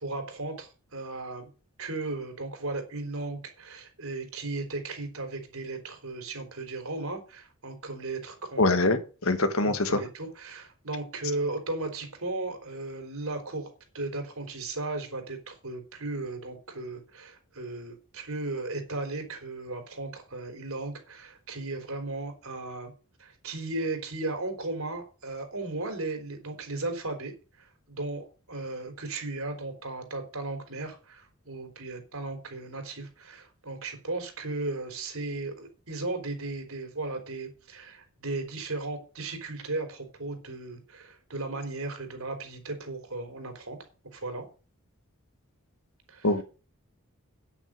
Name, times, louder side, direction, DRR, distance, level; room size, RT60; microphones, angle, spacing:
voice 1, 0.0-1.5 1.8-8.8 9.6-22.9 23.2-27.3 27.6-43.8 44.1-44.5 46.1-46.3, right 2 dB, 70° right, 3.8 m, -36 dB
voice 2, 8.6-10.0 46.2-46.4, left 2 dB, 65° left, 1.6 m, -24 dB
9.6 x 8.8 x 6.5 m
head